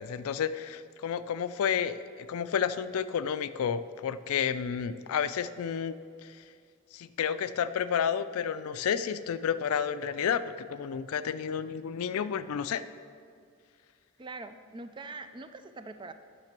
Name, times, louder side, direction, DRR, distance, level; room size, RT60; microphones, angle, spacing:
voice 1, 0.0-6.5 6.9-12.8, left 7 dB, 80° left, 14 dB, 0.4 m, -31 dB
voice 2, 14.2-16.1, right 3 dB, 20° right, 9 dB, 0.4 m, -43 dB
8.9 x 5.9 x 5.9 m, 2.2 s
head